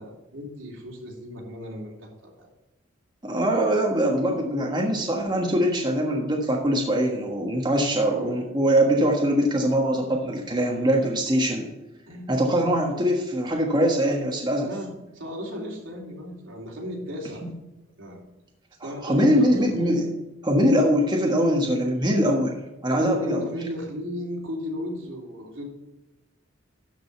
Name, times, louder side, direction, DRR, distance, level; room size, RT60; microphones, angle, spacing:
voice 1, 0.0-2.5 12.1-12.5 14.6-17.4 18.0-18.2 18.8-19.8 23.0-25.6, left 1 dB, 80° right, -2 dB, 3.1 m, -35 dB
voice 2, 3.2-11.7 12.3-14.7 18.8-20.1 20.4-22.5 22.8-23.5, equal, 20° right, 0 dB, 1.4 m, -22 dB
12.5 x 5.3 x 5.7 m, 0.99 s
head